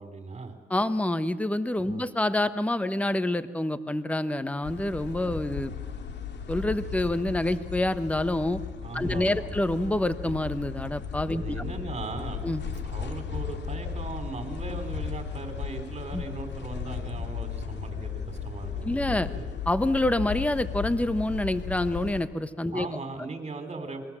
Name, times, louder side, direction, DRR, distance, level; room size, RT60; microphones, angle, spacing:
voice 1, 0.0-0.5 1.8-2.1 8.8-9.6 11.3-12.5 12.8-19.5 22.7-24.0, right 3 dB, 35° right, 7 dB, 4.3 m, -38 dB
voice 2, 0.7-5.7 6.5-8.6 8.9-11.6 12.4-12.6 16.1-16.2 18.8-19.3 19.7-22.9, left 1 dB, 5° left, 12 dB, 1.1 m, -27 dB
sound 1, 4.6-22.3, left 7 dB, 60° left, 2.2 m, -36 dB
27.5 x 21.5 x 7.6 m, 1.4 s
cardioid pair, 90°, 20 cm